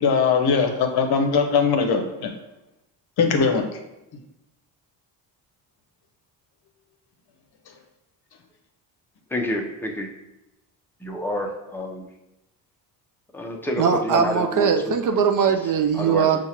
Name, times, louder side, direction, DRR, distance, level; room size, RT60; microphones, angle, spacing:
voice 1, 0.0-2.3 3.2-3.6, left 5 dB, 55° left, 5 dB, 0.7 m, -20 dB
voice 2, 9.3-10.1 11.0-12.0 13.3-14.9 16.0-16.4, left 1 dB, 5° left, 1 dB, 0.6 m, -28 dB
voice 3, 13.8-16.4, right 7 dB, 45° right, 5 dB, 0.4 m, -20 dB
5.5 x 2.5 x 2.9 m, 0.94 s
cardioid pair, 80°, 45 cm